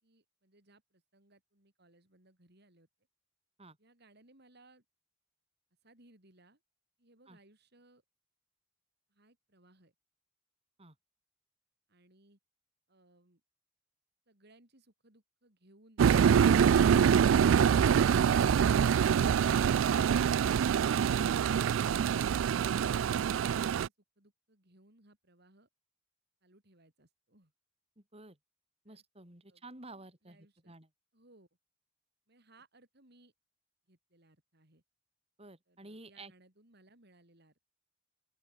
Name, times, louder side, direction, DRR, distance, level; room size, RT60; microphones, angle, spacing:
voice 1, 0.0-2.9 3.8-4.8 5.8-6.6 7.0-8.0 9.1-9.9 11.9-12.4 12.9-13.4 14.3-16.0 23.8-25.7 26.4-27.5 28.9-29.0 29.5-29.6 30.2-30.7 31.1-31.5 32.3-33.3 33.9-34.8 35.7-37.6, right 2 dB, 60° right, 5.5 m, -64 dB
sound 1, 16.0-23.9, right 7 dB, 90° right, 0.3 m, -25 dB
voice 2, 28.0-28.4 28.8-30.9 35.4-36.3, right 2 dB, 30° right, 7.8 m, -52 dB
open air
head